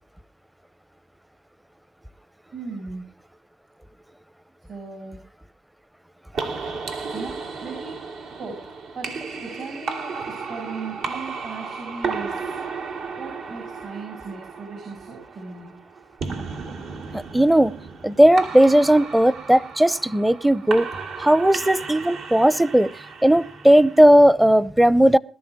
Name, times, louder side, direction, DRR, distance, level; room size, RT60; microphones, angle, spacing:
voice 1, 2.5-3.1 4.7-5.2 7.1-8.0 8.3-8.6 8.9-9.1 9.4-12.6 13.1-15.7, right 4 dB, 60° right, 6.9 m, -37 dB
sound 1, 6.3-24.0, right 4 dB, 80° right, 2.9 m, -34 dB
voice 2, 17.1-17.7 18.0-20.9 21.2-22.9 23.2-25.2, right 1 dB, 5° right, 0.6 m, -16 dB
20.5 x 13.0 x 3.6 m
cardioid pair, 90°, 0 cm